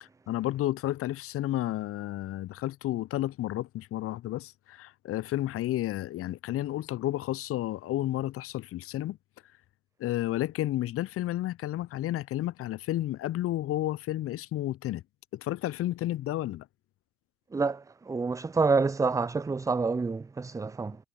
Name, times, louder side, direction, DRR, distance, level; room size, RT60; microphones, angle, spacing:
voice 1, 0.0-9.2 10.0-15.0 15.3-16.7, left 14 dB, 40° left, 0.5 m, -31 dB
voice 2, 17.5-21.0, right 4 dB, 10° right, 0.4 m, -28 dB
hypercardioid pair, 60°, 35 cm